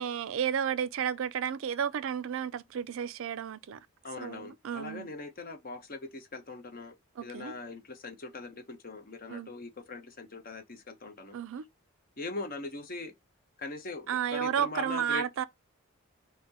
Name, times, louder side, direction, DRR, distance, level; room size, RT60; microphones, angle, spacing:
voice 1, 0.0-3.8 4.2-5.1 7.2-7.6 9.3-9.5 11.3-11.7 14.1-15.4, right 8 dB, 65° right, 0.4 m, -32 dB
voice 2, 4.0-7.0 7.2-11.4 12.2-13.1 13.6-15.2, left 3 dB, 45° left, 0.9 m, -41 dB
5.7 x 2.1 x 2.8 m
head